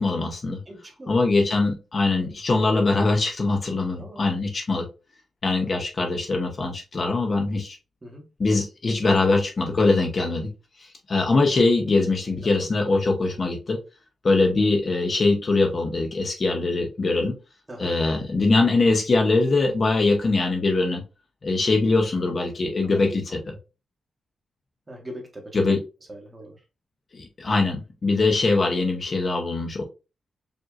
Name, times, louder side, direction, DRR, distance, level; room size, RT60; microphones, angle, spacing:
voice 1, 0.0-0.6 1.1-4.9 5.4-7.8 8.4-10.5 11.1-13.8 14.2-17.4 17.8-21.0 21.4-23.6 25.5-25.8 27.1-29.8, left 3 dB, 40° left, 0.9 m, -22 dB
voice 2, 0.7-1.2 4.0-4.3 8.0-8.3 12.3-12.7 17.7-17.9 22.9-23.5 24.9-26.6, right 1 dB, 20° right, 1.3 m, -41 dB
5.2 x 2.7 x 2.4 m
cardioid pair, 110°, 0 cm